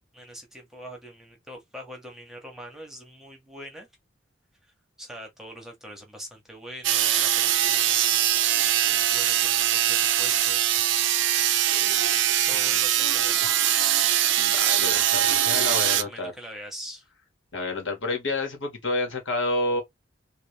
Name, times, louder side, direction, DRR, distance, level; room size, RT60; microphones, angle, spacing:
voice 1, 0.1-3.9 5.0-8.4 8.9-10.6 12.4-13.4 15.4-17.0, equal, ahead, 0.9 m, -42 dB
sound 1, 6.8-16.0, right 11 dB, 75° right, 0.5 m, -22 dB
voice 2, 14.4-16.3 17.5-19.8, left 2 dB, 80° left, 1.6 m, -29 dB
3.3 x 2.4 x 3.2 m
head